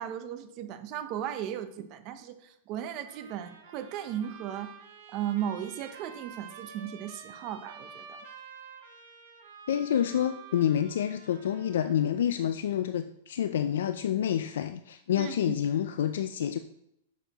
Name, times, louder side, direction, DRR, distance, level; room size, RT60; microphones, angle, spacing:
voice 1, 0.0-4.7 5.1-8.2 15.2-15.5, right 10 dB, 40° right, 9 dB, 0.7 m, -36 dB
Trumpet, 3.0-12.2, right 6 dB, 60° right, 2.3 m, -49 dB
voice 2, 9.7-16.6, left 10 dB, 80° left, 9 dB, 0.4 m, -28 dB
6.9 x 6.5 x 3.0 m, 0.78 s
hypercardioid pair, 145°, 0 cm